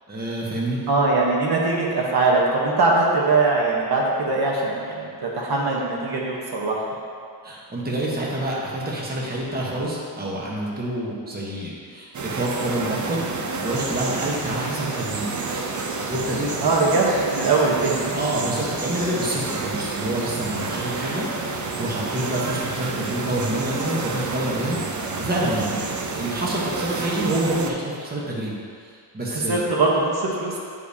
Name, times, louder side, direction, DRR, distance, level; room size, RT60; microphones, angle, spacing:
voice 1, 0.1-0.8 7.4-15.4 16.1-16.5 18.1-28.6 29.1-29.6, right 1 dB, 20° right, -4 dB, 1.1 m, -27 dB
voice 2, 0.9-6.8 14.6-14.9 16.6-18.1 29.3-30.6, right 3 dB, 60° right, -3 dB, 1.1 m, -21 dB
sound 1, 12.1-27.7, right 3 dB, 45° right, 0.6 m, -29 dB
9.9 x 5.1 x 2.8 m, 2.2 s
cardioid pair, 125°, 43 cm